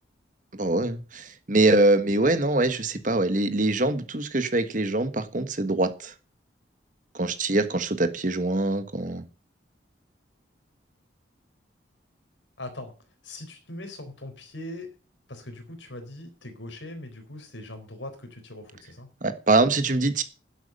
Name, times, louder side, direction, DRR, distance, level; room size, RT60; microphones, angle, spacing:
voice 1, 0.5-6.1 7.1-9.2 19.2-20.2, right 2 dB, 45° right, 9 dB, 1.4 m, -24 dB
voice 2, 12.6-12.9 13.2-14.9 15.3-19.1, left 1 dB, 80° left, 6 dB, 4.0 m, -40 dB
11.0 x 8.3 x 7.8 m, 0.36 s
head